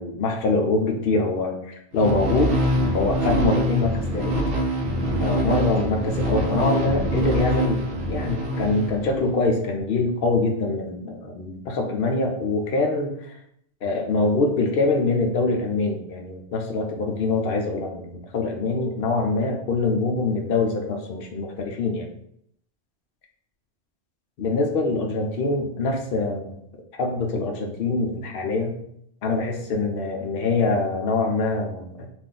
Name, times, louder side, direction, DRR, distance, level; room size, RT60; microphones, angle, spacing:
voice 1, 0.0-2.6 2.9-4.4 5.2-7.8 8.1-13.4 13.8-22.1 24.4-26.5 27.0-28.8 29.2-32.1, left 3 dB, 60° left, 2 dB, 0.7 m, -24 dB
sound 1, 1.9-9.4, equal, 65° right, 0.7 m, -24 dB
2.6 x 2.4 x 3.7 m, 0.72 s
omnidirectional pair, 1.1 m